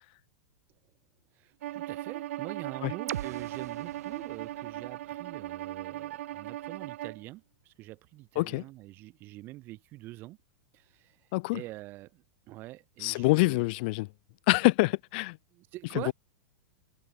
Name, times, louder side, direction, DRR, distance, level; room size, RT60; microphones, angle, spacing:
voice 1, 1.4-10.4 10.7-11.2 11.5-13.7 15.5-16.1, right 18 dB, 25° right, 2.9 m, -44 dB
Bowed string instrument, 1.6-7.2, right 14 dB, 55° right, 1.1 m, -38 dB
sound 1, 3.1-6.9, right 11 dB, 75° right, 5.3 m, -44 dB
voice 2, 13.0-14.1 14.5-15.4 16.1-16.2, left 25 dB, 35° left, 1.5 m, -25 dB
supercardioid pair, 180°, 8 cm